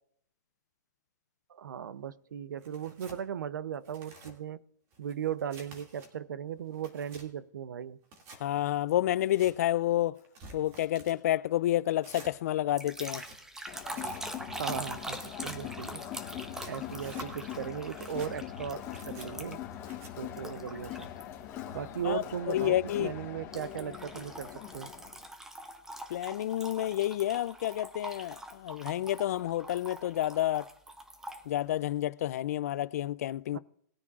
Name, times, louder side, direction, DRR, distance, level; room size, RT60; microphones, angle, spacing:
voice 1, 1.5-4.6 5.0-8.0 14.5-16.0 16.7-19.6 20.2-21.1 21.7-24.9 33.5-33.6, right 9 dB, 85° right, 0.7 m, -37 dB
Tearing, 2.6-3.2 3.7-4.3 4.9-6.1 6.6-7.3 8.0-8.4 9.1-9.5 10.1-11.2 12.0-12.3 12.9-13.4 13.9-14.2 14.9-15.6 16.3-17.3 17.9-18.3 18.9-19.3 19.8-20.1, right 2 dB, 25° right, 2.3 m, -51 dB
voice 2, 8.4-10.2 10.5-13.2 22.0-23.1 26.1-30.7 31.5-33.6, left 13 dB, 55° left, 0.4 m, -29 dB
sound 1, 12.8-19.7 20.4-21.2 21.7-22.0 23.5-31.4, right 1 dB, 5° right, 0.7 m, -43 dB
Crowd, 13.7-25.2, left 11 dB, 25° left, 1.6 m, -42 dB
20.0 x 9.6 x 2.4 m
hypercardioid pair, 165°, 10 cm